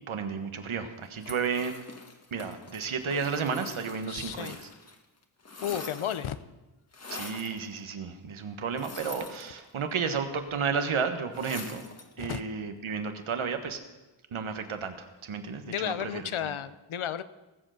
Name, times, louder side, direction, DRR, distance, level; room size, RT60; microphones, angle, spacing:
voice 1, 0.1-1.8 2.3-4.7 7.1-11.8 12.2-13.8 14.3-16.5, right 5 dB, 80° right, 7 dB, 1.5 m, -32 dB
sound 1, 1.2-5.0 5.2-6.4 6.9-7.6 8.7-9.9 11.3-12.1, left 3 dB, 30° left, 1.4 m, -44 dB
voice 2, 4.1-4.6 5.6-6.4 12.2-12.4 15.6-17.2, left 10 dB, 85° left, 14 dB, 0.8 m, -33 dB
19.5 x 8.0 x 6.5 m, 1.1 s
wide cardioid pair, 150°, 48 cm